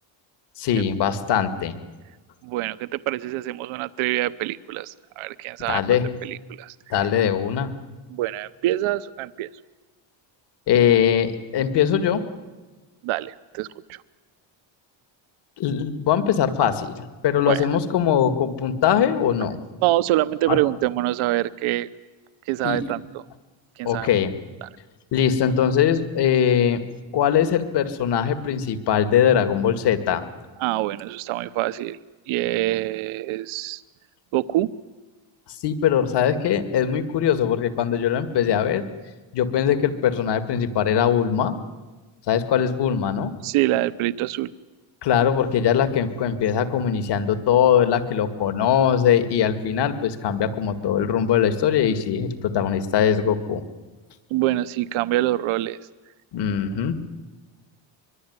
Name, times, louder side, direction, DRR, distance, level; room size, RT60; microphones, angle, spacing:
voice 1, 0.6-1.7 5.7-6.0 6.9-7.8 10.7-12.2 15.6-19.6 20.5-20.6 22.6-22.8 23.8-24.3 25.1-26.8 27.1-30.3 35.6-38.8 39.3-41.6 42.3-43.3 45.0-53.6 56.3-57.0, left 8 dB, 55° left, 9 dB, 2.2 m, -21 dB
voice 2, 2.4-5.8 6.2-7.1 8.1-9.5 13.0-14.0 17.5-17.7 19.8-21.9 22.5-23.2 23.8-24.1 24.6-24.7 30.6-32.0 32.3-33.8 34.3-34.7 43.4-44.5 54.3-55.8, right 15 dB, 85° right, 15 dB, 1.0 m, -25 dB
24.0 x 23.0 x 9.6 m, 1.2 s
cardioid pair, 145°, 47 cm